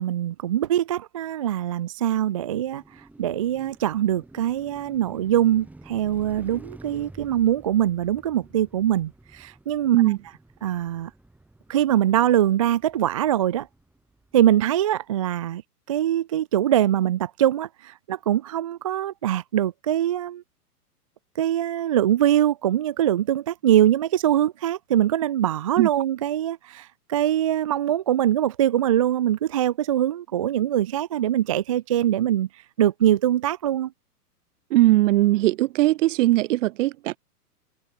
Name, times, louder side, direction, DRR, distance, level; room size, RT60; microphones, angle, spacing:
voice 1, 0.0-10.0 10.6-11.1 11.7-13.7 14.3-15.6 15.9-20.4 21.4-33.9, right 11 dB, 25° right, 0.3 m, -23 dB
Car passing by, 2.5-14.7, right 2 dB, 5° right, 1.5 m, -49 dB
voice 2, 34.7-37.2, right 17 dB, 50° right, 1.1 m, -19 dB
hypercardioid pair, 125°, 47 cm